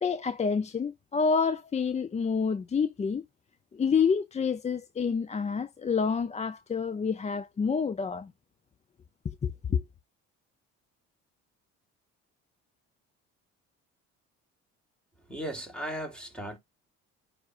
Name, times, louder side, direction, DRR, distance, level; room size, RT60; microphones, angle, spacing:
voice 1, 0.0-3.2 3.7-8.3 9.4-9.8, left 5 dB, 25° left, 0.5 m, -28 dB
voice 2, 15.3-16.6, right 1 dB, 5° left, 3.1 m, -36 dB
9.5 x 4.9 x 2.5 m
cardioid pair, 95°, 29 cm